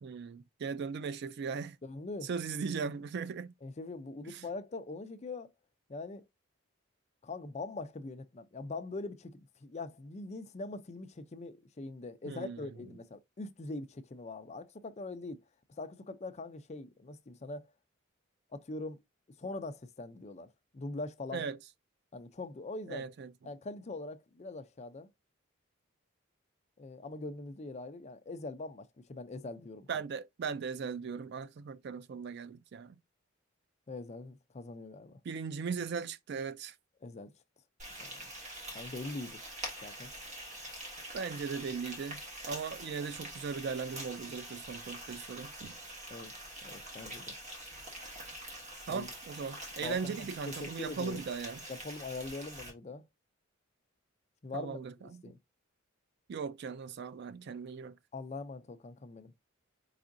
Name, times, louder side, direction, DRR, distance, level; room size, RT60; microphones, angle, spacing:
voice 1, 0.0-1.8 2.3-3.5 4.3-4.4 12.3-12.6 21.3-21.6 22.9-23.3 29.9-33.0 35.2-36.7 41.1-45.8 48.9-51.6 54.5-55.2 56.3-58.0, right 5 dB, 55° right, 0.3 m, -38 dB
voice 2, 1.8-2.3 3.6-5.5 5.9-6.2 7.2-15.4 15.8-17.7 18.5-19.0 19.4-21.5 22.1-23.0 23.4-25.1 26.8-30.0 33.9-35.2 37.0-37.3 38.0-38.3 38.7-39.4 39.8-40.1 46.1-46.3 46.6-47.3 48.9-49.1 49.8-51.2 51.7-53.0 54.4-55.4 58.1-59.3, left 3 dB, 30° left, 0.5 m, -42 dB
Frying (food), 37.8-52.7, right 1 dB, 35° right, 1.6 m, -45 dB
4.9 x 3.5 x 2.6 m
head